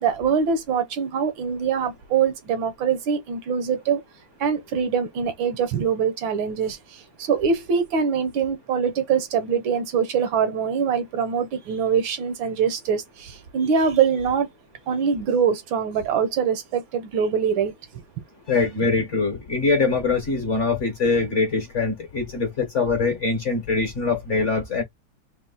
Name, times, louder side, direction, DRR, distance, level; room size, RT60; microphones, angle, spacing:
voice 1, 0.0-4.0 4.4-6.8 7.3-14.5 14.9-17.7, right 6 dB, 70° right, 1.5 m, -23 dB
voice 2, 18.5-24.8, left 4 dB, 45° left, 1.1 m, -23 dB
4.3 x 2.4 x 3.9 m
omnidirectional pair, 2.3 m